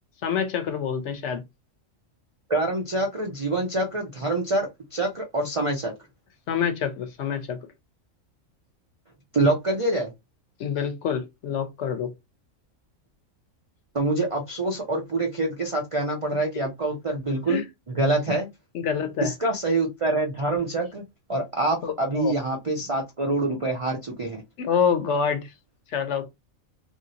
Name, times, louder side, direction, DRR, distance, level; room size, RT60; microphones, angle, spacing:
voice 1, 0.2-1.4 6.5-7.6 10.6-12.1 17.5-17.6 18.7-19.3 21.8-22.3 24.6-25.5 25.9-26.3, left 7 dB, 65° left, 0.9 m, -26 dB
voice 2, 2.5-5.9 9.3-10.1 13.9-17.6 18.0-18.5 19.2-21.0 21.3-24.4, right 2 dB, 50° right, 0.4 m, -25 dB
3.1 x 2.7 x 2.8 m
omnidirectional pair, 1.4 m